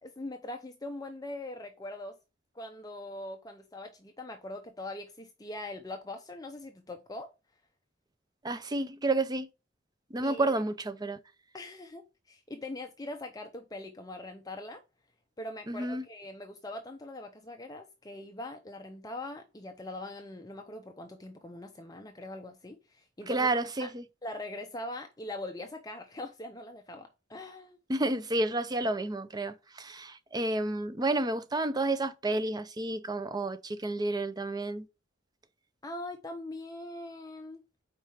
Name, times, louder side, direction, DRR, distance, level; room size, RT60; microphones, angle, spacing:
voice 1, 0.0-2.2 2.5-7.3 10.2-10.5 11.5-14.8 15.4-23.5 23.8-23.9 24.2-27.8 35.8-37.6, left 1 dB, 20° left, 0.6 m, -42 dB
voice 2, 8.4-9.5 10.1-11.2 15.7-16.0 23.3-24.0 27.9-34.9, right 2 dB, 20° right, 0.5 m, -30 dB
4.8 x 4.6 x 5.6 m
head